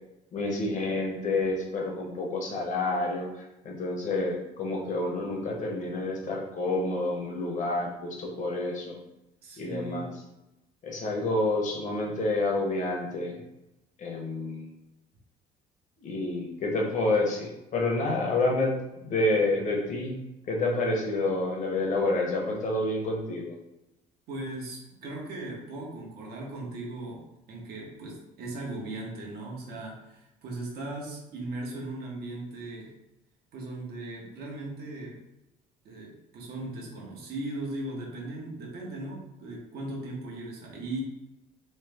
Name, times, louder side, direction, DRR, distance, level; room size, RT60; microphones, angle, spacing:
voice 1, 0.3-3.3 3.6-9.0 9.6-10.0 10.8-13.4 14.0-14.7 16.0-18.7 19.0-20.2 20.5-23.5, left 2 dB, 50° left, 0 dB, 0.8 m, -28 dB
voice 2, 9.4-10.1 24.3-27.2 27.5-32.9 33.5-35.2 35.8-41.0, right 2 dB, 70° right, -2 dB, 1.0 m, -38 dB
3.1 x 2.0 x 3.3 m, 0.92 s
cardioid pair, 110°, 17 cm